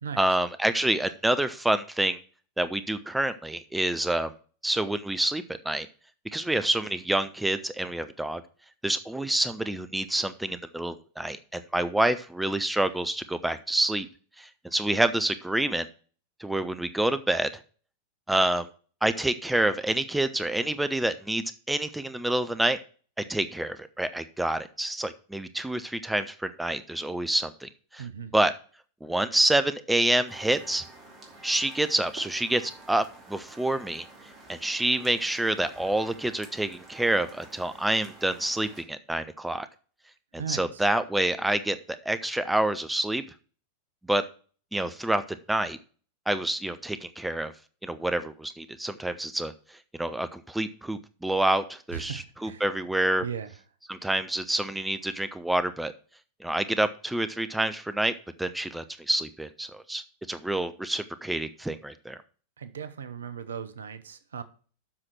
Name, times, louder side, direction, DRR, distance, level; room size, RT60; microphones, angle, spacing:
voice 1, 0.2-2.2 2.6-4.3 4.6-5.9 6.3-8.4 8.8-14.1 14.4-15.9 16.4-17.5 18.3-18.7 19.0-22.8 23.3-28.1 28.3-28.5 29.0-30.8 31.4-34.1 34.5-39.7 40.3-43.2 44.1-44.2 44.7-45.2 45.5-45.8 46.3-47.5 47.8-49.5 50.0-53.3 53.9-55.9 56.4-58.1 58.4-62.2, right 1 dB, 5° right, 12 dB, 0.6 m, -27 dB
voice 2, 28.0-28.3 40.3-40.8 51.9-52.6 53.2-53.5 62.6-64.4, right 7 dB, 65° right, 13 dB, 0.9 m, -37 dB
sound 1, 30.3-38.8, right 3 dB, 25° right, 2.7 m, -49 dB
7.6 x 6.0 x 6.0 m, 0.41 s
figure-of-eight pair, 90°, 0 cm